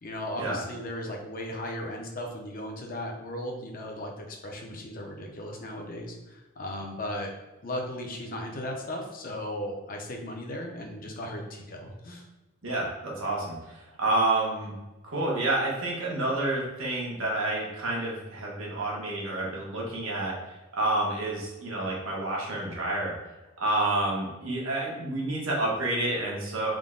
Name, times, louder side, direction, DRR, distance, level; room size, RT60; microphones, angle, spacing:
voice 1, 0.0-7.3 7.6-12.2, left 1 dB, 45° left, 1 dB, 0.6 m, -36 dB
voice 2, 12.6-14.7 15.0-20.3 20.7-23.1 23.6-26.7, right 2 dB, 80° right, -4 dB, 1.2 m, -29 dB
3.6 x 2.2 x 3.7 m, 1.1 s
head